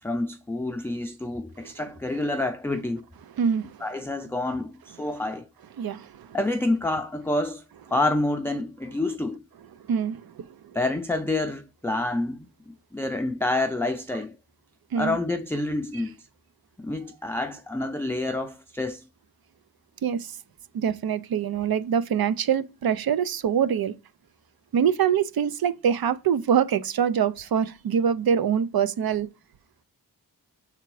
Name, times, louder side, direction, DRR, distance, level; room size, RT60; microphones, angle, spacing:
voice 1, 0.0-3.0 3.8-5.5 6.3-7.6 7.9-9.4 10.7-14.4 15.0-16.2 16.8-19.1, left 2 dB, 5° left, 0.4 m, -28 dB
voice 2, 3.4-3.8 5.8-6.4 9.9-10.8 14.9-15.2 15.9-16.0 20.0-20.4 20.7-23.9 24.7-29.3, right 8 dB, 70° right, 0.6 m, -24 dB
6.7 x 3.6 x 4.7 m
wide cardioid pair, 150°, 37 cm